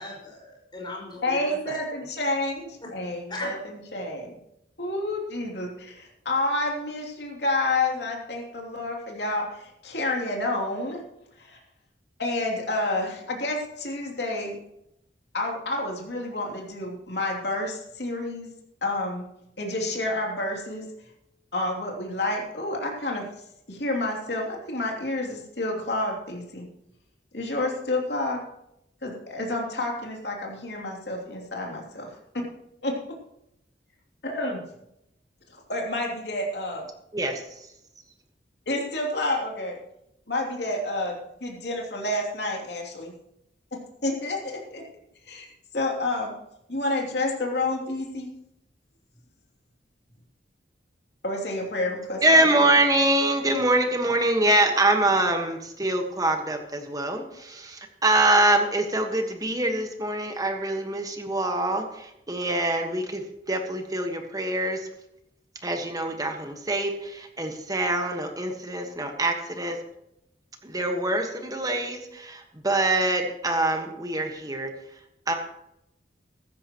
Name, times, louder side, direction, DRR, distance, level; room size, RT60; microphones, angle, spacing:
voice 1, 0.0-1.8 2.8-2.9 3.3-3.5, left 2 dB, 25° left, -1 dB, 5.3 m, -37 dB
voice 2, 1.2-4.4 4.8-11.0 11.4-11.6 12.2-14.6 15.3-18.5 18.8-19.2 19.6-20.9 21.5-23.3 23.7-26.7 27.3-28.4 29.0-32.4 32.8-32.9 34.2-34.6 35.5-36.9 38.7-39.8 40.3-43.1 43.7-44.8 45.3-45.5 45.7-46.3 46.7-48.4 51.2-52.7, left 2 dB, 65° left, -1 dB, 3.0 m, -29 dB
voice 3, 52.2-64.9 65.6-69.8 70.6-74.7 75.3-75.4, right 1 dB, 20° right, 4 dB, 1.5 m, -24 dB
15.5 x 14.0 x 3.1 m, 0.82 s
head